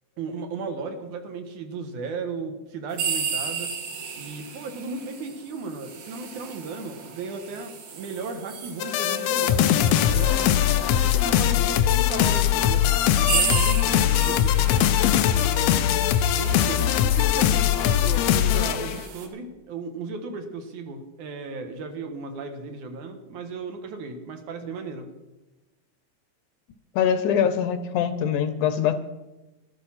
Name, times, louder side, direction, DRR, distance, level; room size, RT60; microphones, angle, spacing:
voice 1, 0.2-3.7 4.2-9.7 10.1-14.7 15.3-15.9 16.3-25.1, right 4 dB, 65° right, 6 dB, 2.6 m, -35 dB
sound 1, 2.9-11.4 12.1-12.2 12.9-19.3, right 6 dB, 90° right, 3.5 m, -34 dB
sound 2, 8.8-19.0, left 11 dB, 90° left, 1.5 m, -21 dB
voice 2, 27.0-28.9, left 8 dB, 75° left, 11 dB, 2.1 m, -23 dB
13.0 x 12.5 x 5.7 m, 1.1 s
omnidirectional pair, 3.9 m